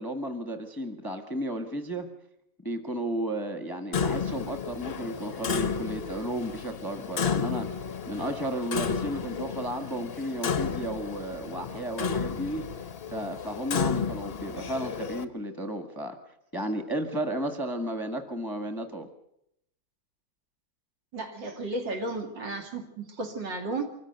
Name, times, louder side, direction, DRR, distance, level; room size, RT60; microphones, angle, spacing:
voice 1, 0.0-2.1 2.6-7.7 8.1-12.6 13.1-16.2 16.5-19.1, right 1 dB, 15° left, 5 dB, 1.1 m, -33 dB
Clock, 3.9-15.2, left 6 dB, 45° left, 0.8 m, -32 dB
voice 2, 21.1-24.0, right 2 dB, 65° right, 3 dB, 3.0 m, -34 dB
24.5 x 14.5 x 7.9 m, 0.78 s
omnidirectional pair, 2.1 m